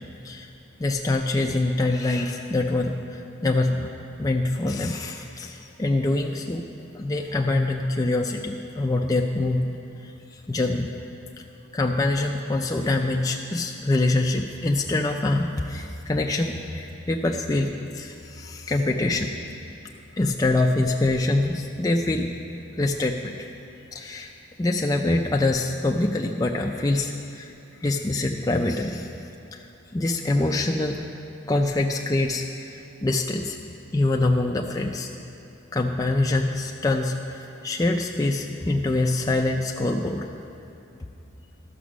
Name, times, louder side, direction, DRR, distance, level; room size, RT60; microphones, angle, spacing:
voice 1, 0.8-3.9 4.2-6.7 6.9-9.7 10.0-10.9 11.4-11.5 11.7-19.3 20.2-22.3 22.7-23.4 23.9-24.3 24.6-27.5 27.8-29.1 29.5-29.7 29.9-31.0 31.5-33.6 33.9-35.1 35.7-40.3, left 2 dB, 20° left, 1 dB, 0.3 m, -25 dB
12.5 x 6.1 x 6.2 m, 2.7 s
head